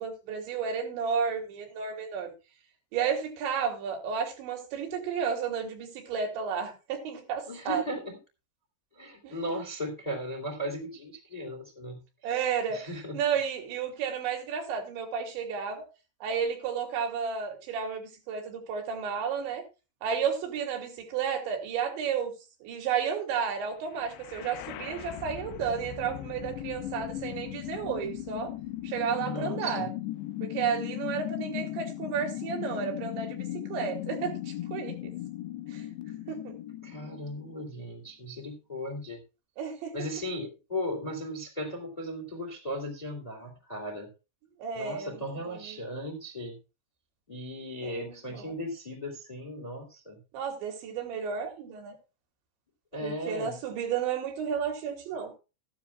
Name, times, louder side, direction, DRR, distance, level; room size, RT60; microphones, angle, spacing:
voice 1, 0.0-2.3 2.9-7.8 9.2-9.4 12.2-15.9 16.2-19.6 20.0-22.3 22.6-28.5 28.8-29.9 30.4-35.1 35.7-35.8 36.3-36.5 39.6-40.0 44.6-45.2 45.5-45.8 47.8-48.6 50.3-52.0 53.0-55.3, right 7 dB, 80° right, 3 dB, 4.9 m, -32 dB
voice 2, 7.5-8.2 8.9-12.4 12.7-13.2 29.2-29.9 36.8-39.2 39.9-44.1 44.7-46.6 47.3-50.2 52.9-53.6, equal, 10° left, 3 dB, 2.0 m, -37 dB
sound 1, 23.9-37.9, left 14 dB, 80° left, 2.9 m, -38 dB
14.5 x 12.0 x 2.4 m, 0.29 s
omnidirectional pair, 5.1 m